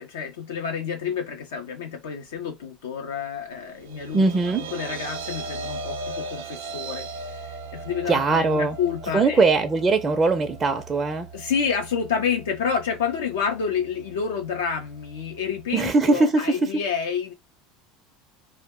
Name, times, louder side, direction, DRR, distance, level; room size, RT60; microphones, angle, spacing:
voice 1, 0.0-4.3 4.7-7.5 7.7-9.4 11.3-17.3, left 6 dB, 85° left, 0.4 m, -29 dB
sound 1, 3.7-16.0, right 3 dB, 85° right, 0.5 m, -38 dB
voice 2, 4.1-4.7 8.1-8.8 9.1-11.3 15.7-16.7, right 3 dB, 25° right, 0.4 m, -21 dB
2.2 x 2.0 x 3.5 m
hypercardioid pair, 85°, 0 cm